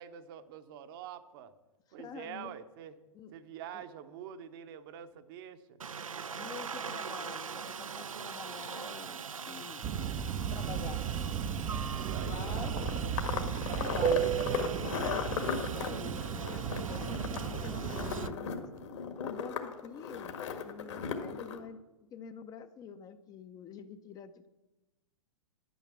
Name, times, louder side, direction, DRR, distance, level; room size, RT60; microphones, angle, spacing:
voice 1, 0.0-1.5 1.9-3.0 3.3-5.8 12.0-13.1 13.5-15.3, right 9 dB, 45° right, 9 dB, 0.9 m, -45 dB
voice 2, 2.0-2.5 3.1-3.3 3.7-3.8 6.4-10.0 10.3-11.0 11.7-11.8 12.3-12.7 13.8-14.3 15.7-18.7 19.2-21.8 22.1-24.5, left 7 dB, 20° left, 10 dB, 0.6 m, -47 dB
Aircraft, 5.8-18.3, right 6 dB, 80° right, 0.6 m, -42 dB
sound 1, 9.8-18.3, right 9 dB, 25° right, 0.5 m, -35 dB
sound 2, 12.2-21.6, left 7 dB, 60° left, 1.6 m, -37 dB
10.5 x 9.3 x 6.0 m, 1.0 s
figure-of-eight pair, 110°, 17 cm